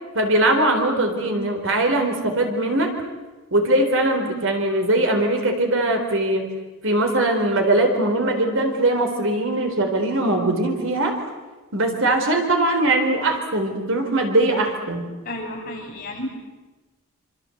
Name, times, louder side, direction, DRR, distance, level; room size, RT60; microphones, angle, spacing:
voice 1, 0.1-2.9 3.5-6.5 6.8-11.2 11.7-15.1, right 1 dB, 60° right, 4 dB, 4.0 m, -21 dB
voice 2, 15.2-16.3, left 1 dB, 40° left, -1 dB, 6.9 m, -32 dB
26.5 x 26.0 x 7.9 m, 1.2 s
head